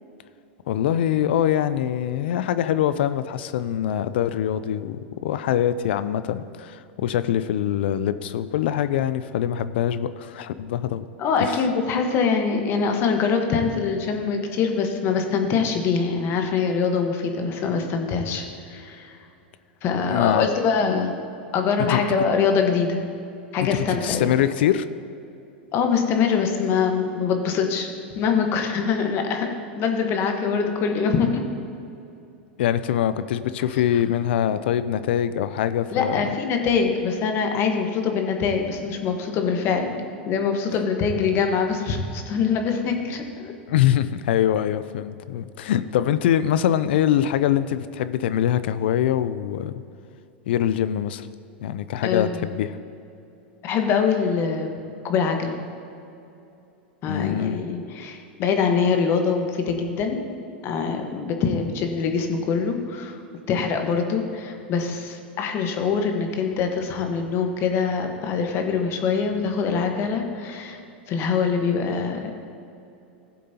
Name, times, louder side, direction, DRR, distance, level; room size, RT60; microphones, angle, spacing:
voice 1, 0.7-11.1 20.1-20.5 21.9-22.0 23.9-24.8 32.6-36.2 43.7-49.8 50.5-51.3 51.6-52.7 57.1-57.6, left 10 dB, 70° left, 13 dB, 0.4 m, -23 dB
voice 2, 11.2-19.2 19.8-21.1 21.5-23.0 23.5-24.3 25.7-27.9 28.1-29.5 29.8-31.4 35.9-43.5 52.0-52.5 53.6-54.8 55.0-55.5 57.0-60.2 60.6-63.2 63.5-70.8 71.1-72.3, left 5 dB, 40° left, 4 dB, 1.3 m, -24 dB
15.5 x 7.4 x 2.9 m, 2.7 s
hypercardioid pair, 105°, 6 cm